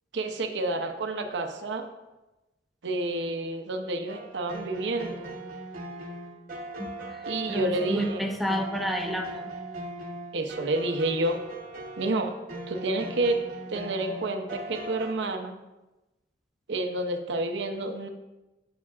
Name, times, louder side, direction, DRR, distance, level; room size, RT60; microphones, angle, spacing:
voice 1, 0.1-1.9 2.8-5.3 7.3-8.3 10.3-11.4 12.0-12.3 12.7-13.4 13.7-15.5 16.7-18.1, right 2 dB, 70° right, 6 dB, 0.6 m, -29 dB
sound 1, 4.1-15.1, right 1 dB, 45° right, 0.9 m, -39 dB
voice 2, 6.8-7.2 7.5-9.4, equal, ahead, 3 dB, 0.4 m, -30 dB
8.2 x 7.2 x 2.4 m, 1.0 s
head